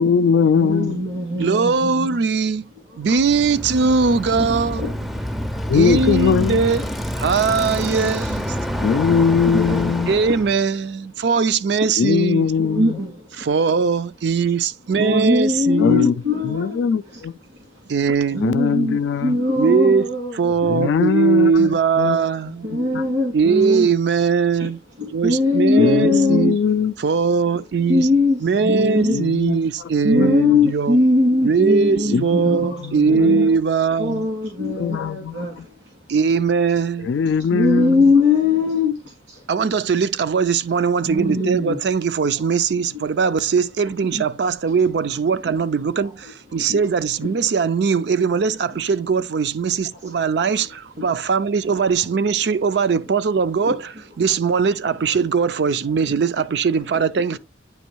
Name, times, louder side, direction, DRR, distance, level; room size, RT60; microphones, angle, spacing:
voice 1, 0.0-1.0 5.7-6.6 8.8-10.1 12.0-13.0 15.8-16.1 16.4-17.3 18.4-19.4 20.7-22.2 22.7-23.0 25.8-26.9 29.0-30.4 32.1-33.5 34.8-35.6 37.0-38.1, left 6 dB, 85° left, 0.3 m, -21 dB
voice 2, 0.6-2.2 4.4-5.7 7.5-7.7 8.7-10.0 12.6-13.5 14.9-17.2 17.5-17.6 18.3-20.9 22.6-23.9 24.6-24.7 25.0-26.5 27.9-29.2 30.0-33.6 34.0-35.8 37.5-39.4 41.1-41.8 44.1-44.2 45.5-45.6 46.0-46.1 46.5-46.8 51.0-51.1 51.8-51.9 53.7-53.8, left 3 dB, 85° right, 2.0 m, -22 dB
voice 3, 1.3-2.7 3.0-4.9 5.7-6.8 7.2-8.6 10.1-12.5 13.4-16.0 17.9-18.5 19.6-20.1 20.3-22.7 23.3-24.8 25.1-26.6 27.0-28.1 28.4-31.0 31.4-34.3 36.1-37.1 39.5-57.4, right 5 dB, 70° right, 0.4 m, -20 dB
Bicycle, 3.1-10.6, equal, ahead, 0.4 m, -27 dB
9.2 x 3.1 x 4.5 m
head